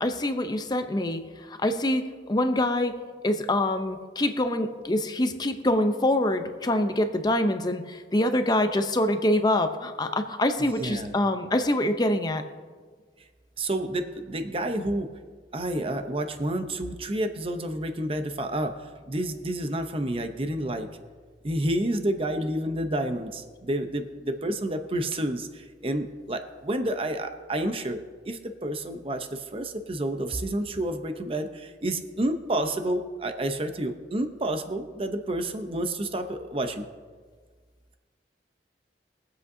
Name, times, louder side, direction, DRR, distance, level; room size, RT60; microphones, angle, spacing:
voice 1, 0.0-12.4, left 1 dB, 25° left, 7 dB, 0.7 m, -25 dB
voice 2, 10.6-11.1 13.6-15.1 15.5-20.9 21.4-36.9, right 1 dB, 30° right, 7 dB, 0.8 m, -29 dB
22.5 x 7.9 x 2.7 m, 1.5 s
head